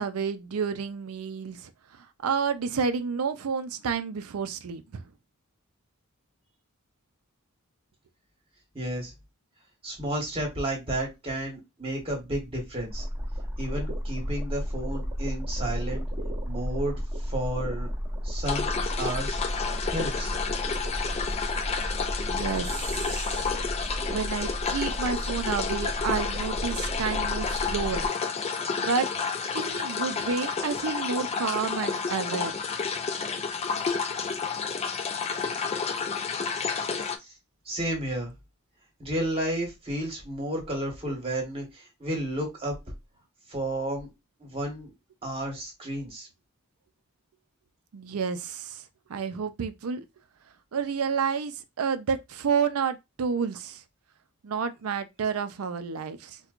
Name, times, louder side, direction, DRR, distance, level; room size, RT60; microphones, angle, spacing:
voice 1, 0.0-1.7 2.0-5.0 22.2-23.5 24.1-28.1 28.8-29.1 29.5-32.5 47.9-48.8 49.1-50.0 50.7-53.8 54.4-56.4, right 6 dB, 70° right, 0.5 m, -30 dB
voice 2, 8.7-9.1 9.8-13.1 13.6-16.0 16.4-17.9 18.2-18.7 19.0-19.4 19.9-20.3 37.2-37.3 37.6-38.3 39.0-42.7 43.5-44.1 44.4-44.9 45.2-46.3, right 1 dB, 25° right, 1.3 m, -32 dB
sound 1, 12.9-28.1, equal, 10° right, 1.0 m, -33 dB
sound 2, 18.4-37.2, left 5 dB, 30° left, 0.3 m, -30 dB
4.4 x 2.2 x 2.4 m
head